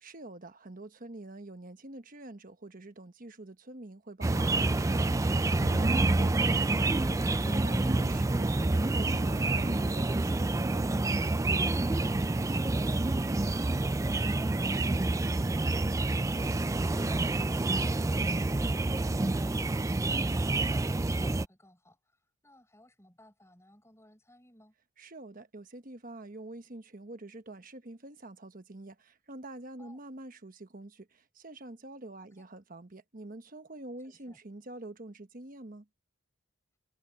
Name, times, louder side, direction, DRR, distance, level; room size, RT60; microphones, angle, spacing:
voice 1, 0.0-10.9 25.0-35.9, right 2 dB, 40° right, 1.2 m, -46 dB
sound 1, 4.2-21.4, right 2 dB, 15° right, 0.3 m, -28 dB
sound 2, 5.6-10.7, right 1 dB, 80° right, 5.3 m, -46 dB
voice 2, 11.9-24.7 29.8-30.0 32.2-32.3 34.0-34.4, left 1 dB, 15° left, 6.1 m, -61 dB
head